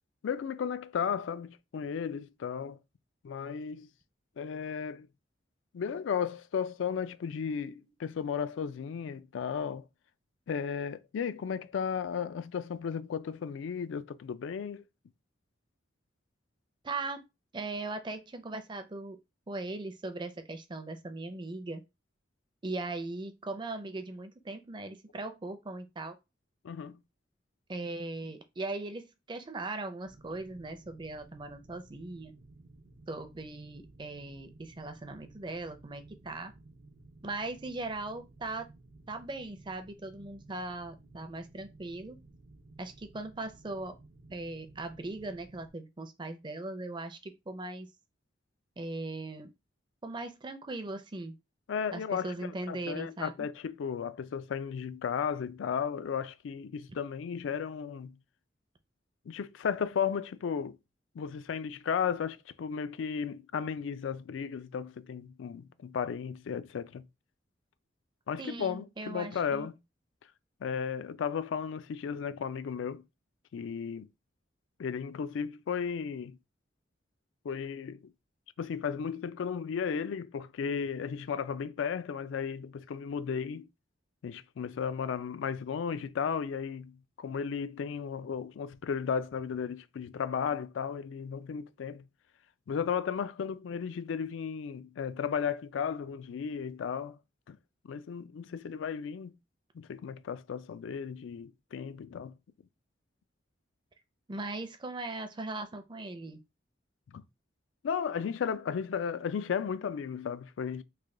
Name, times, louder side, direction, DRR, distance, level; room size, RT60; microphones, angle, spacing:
voice 1, 0.2-2.8 3.2-3.9 4.4-5.1 5.7-9.9 10.5-14.8 26.6-27.0 51.7-58.2 59.3-60.8 61.1-67.0 68.3-69.7 70.6-73.0 73.5-74.1 74.8-76.4 77.4-78.0 78.6-83.7 84.2-92.1 92.7-97.2 97.5-97.6 97.8-99.4 99.7-102.4 107.1-107.2 107.8-110.8, left 7 dB, 80° left, 0.3 m, -34 dB
voice 2, 16.8-17.2 17.5-19.2 19.5-21.8 22.6-26.2 27.7-32.3 33.1-36.5 37.2-38.7 39.1-42.2 42.8-43.9 44.3-47.9 48.8-49.5 50.0-51.3 51.9-53.3 68.4-69.7 104.3-106.4, right 2 dB, 25° right, 0.4 m, -39 dB
sound 1, 30.0-45.7, right 2 dB, 75° right, 0.6 m, -56 dB
3.2 x 2.2 x 3.7 m
head